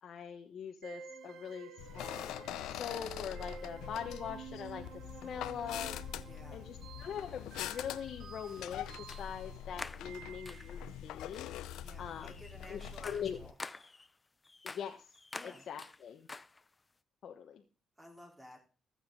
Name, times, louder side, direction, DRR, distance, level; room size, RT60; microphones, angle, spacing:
voice 1, 0.0-6.0 6.5-11.6 12.0-12.3 12.7-13.4 14.6-15.1 15.4-16.3 17.2-17.6, left 8 dB, 65° left, 3 dB, 1.1 m, -43 dB
sound 1, 0.8-11.0, right 6 dB, 65° right, 1.2 m, -51 dB
sound 2, 1.8-13.5, left 10 dB, 90° left, 0.5 m, -44 dB
sound 3, 3.8-3.9 5.5-5.7 6.7-6.8 9.1-9.4 9.8-10.9 11.3-11.6 12.0-16.9, left 3 dB, 25° left, 0.4 m, -49 dB
voice 2, 6.1-6.7 11.8-13.5 15.3-15.7 18.0-18.6, equal, 10° right, 1 dB, 3.8 m, -54 dB
14.0 x 7.9 x 3.9 m, 0.37 s
cardioid pair, 90°, 0 cm